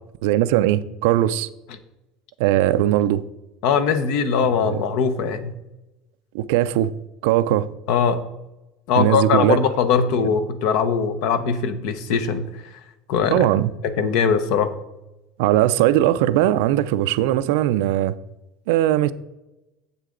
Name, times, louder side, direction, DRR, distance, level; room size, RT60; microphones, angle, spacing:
voice 1, 0.2-1.5 2.4-3.2 4.6-4.8 6.3-6.9 7.2-7.7 8.9-9.6 10.1-10.3 13.3-13.7 15.4-18.2 18.7-19.1, right 13 dB, 85° right, 0.4 m, -19 dB
voice 2, 3.6-5.5 7.9-8.2 8.9-12.7 13.1-13.5 13.8-14.7, left 6 dB, 65° left, 0.9 m, -21 dB
9.6 x 7.4 x 3.8 m
cardioid pair, 155°, 0 cm